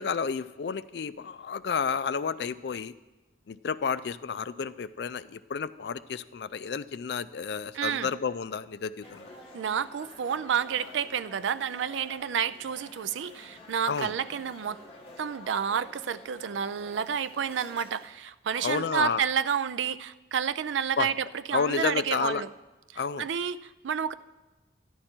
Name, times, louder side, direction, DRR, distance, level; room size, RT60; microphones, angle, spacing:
voice 1, 0.0-2.9 3.5-9.3 13.9-14.1 18.6-19.2 21.0-21.1 21.5-22.4 23.0-23.3, left 6 dB, 60° left, 15 dB, 0.4 m, -31 dB
voice 2, 7.7-8.1 9.5-14.8 15.2-22.5 22.9-24.1, right 7 dB, 85° right, 15 dB, 0.4 m, -30 dB
sound 1, 9.0-18.1, left 1 dB, 30° left, 1.3 m, -50 dB
13.0 x 11.0 x 4.4 m, 1.1 s
head